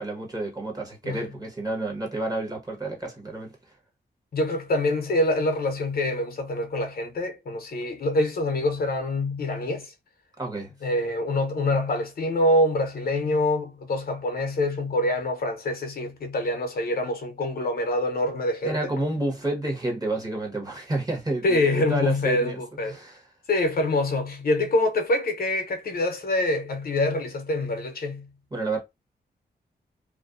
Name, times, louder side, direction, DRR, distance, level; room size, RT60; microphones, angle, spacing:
voice 1, 0.0-3.6 10.4-10.7 18.6-23.2 28.5-28.8, right 2 dB, 20° right, 1.0 m, -30 dB
voice 2, 4.3-9.9 10.8-18.7 21.4-23.0 23.5-28.3, left 1 dB, 60° left, 0.7 m, -25 dB
2.4 x 2.1 x 2.4 m
cardioid pair, 85°, 18 cm